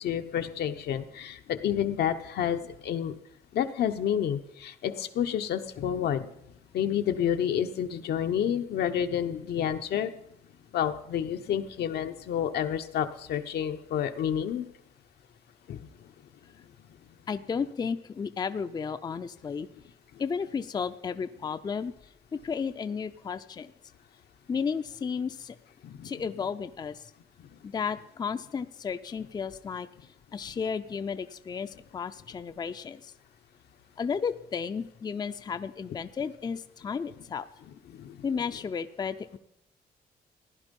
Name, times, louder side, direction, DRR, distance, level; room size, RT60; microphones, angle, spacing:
voice 1, 0.0-3.1 3.5-6.3 6.7-10.1 10.7-14.6 15.7-15.8 25.8-26.1 38.0-38.1, left 9 dB, 80° left, 7 dB, 0.9 m, -29 dB
voice 2, 17.3-19.7 20.2-21.9 22.3-23.7 24.5-25.6 26.0-27.1 27.6-29.9 30.3-33.1 34.0-37.5 38.2-39.4, left 6 dB, 25° left, 10 dB, 0.5 m, -33 dB
16.0 x 10.5 x 5.3 m, 0.77 s
cardioid pair, 135°, 17 cm